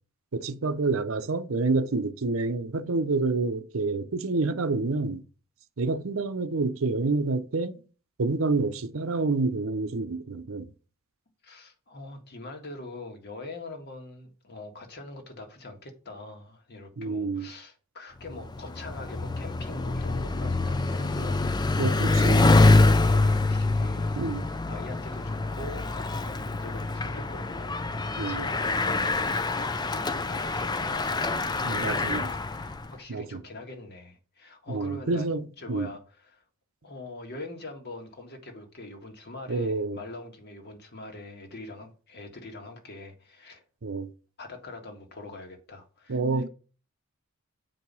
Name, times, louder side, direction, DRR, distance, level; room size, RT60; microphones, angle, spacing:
voice 1, 0.3-5.2 5.8-7.8 8.2-10.7 17.0-17.5 21.8-22.5 24.2-24.4 28.2-28.4 31.6-32.3 33.1-33.4 34.7-35.9 39.5-40.0 43.8-44.1 46.1-46.5, right 3 dB, 70° right, 0.7 m, -28 dB
voice 2, 11.4-35.3 35.6-36.4 36.8-43.6 44.4-46.5, left 2 dB, 50° left, 1.6 m, -43 dB
Bicycle, 18.3-32.9, left 2 dB, 20° left, 0.5 m, -25 dB
7.8 x 4.7 x 5.4 m
head